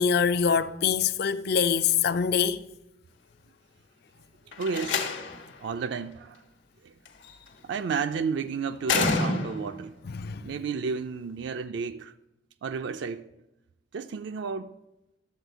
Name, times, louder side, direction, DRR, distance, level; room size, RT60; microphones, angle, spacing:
voice 1, 0.0-2.6 10.1-10.5, left 7 dB, 60° left, 0.5 m, -24 dB
Slam, 4.5-5.5 7.1-7.5 8.8-9.8, left 4 dB, 85° left, 1.2 m, -28 dB
voice 2, 4.6-5.1 5.6-6.4 6.8-6.9 7.6-10.0 10.4-12.1 12.6-13.2 13.9-14.7, right 5 dB, 65° right, 0.4 m, -32 dB
12.0 x 4.0 x 8.1 m
head